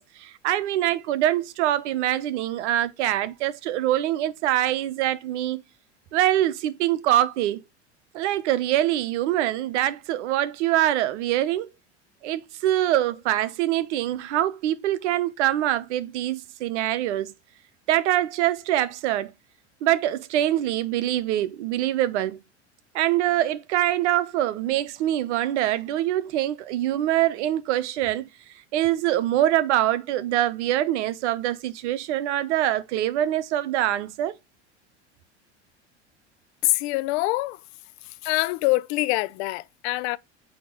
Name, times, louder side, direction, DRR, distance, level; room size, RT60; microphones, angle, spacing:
voice 1, 0.0-5.6 6.1-7.6 8.1-11.7 12.2-17.3 17.9-19.3 19.8-22.4 22.9-28.3 28.7-34.3, right 13 dB, 70° right, 0.8 m, -24 dB
voice 2, 36.6-37.6 38.2-40.2, left 20 dB, 60° left, 0.6 m, -24 dB
8.4 x 2.9 x 3.8 m
hypercardioid pair, 80°, 36 cm